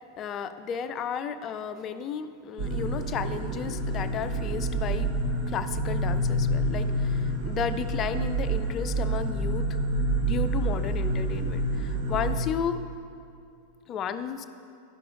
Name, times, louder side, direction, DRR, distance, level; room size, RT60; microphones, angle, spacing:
voice 1, 0.2-9.8 10.2-12.8 13.9-14.4, left 7 dB, 30° left, 11 dB, 0.4 m, -33 dB
sound 1, 2.6-12.4, right 1 dB, 45° right, 1.0 m, -28 dB
11.5 x 10.5 x 2.4 m, 2.5 s
figure-of-eight pair, 90°, 0 cm